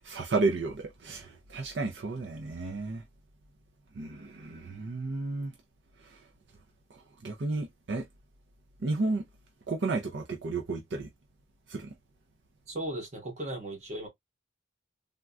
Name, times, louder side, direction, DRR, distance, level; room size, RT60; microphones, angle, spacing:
voice 1, 0.0-3.0 3.9-5.6 6.0-6.3 6.9-8.1 8.8-9.2 9.7-11.1 11.7-11.9, right 3 dB, 65° right, 0.6 m, -32 dB
voice 2, 12.7-14.1, right 1 dB, 40° right, 1.2 m, -36 dB
3.6 x 2.3 x 2.4 m
head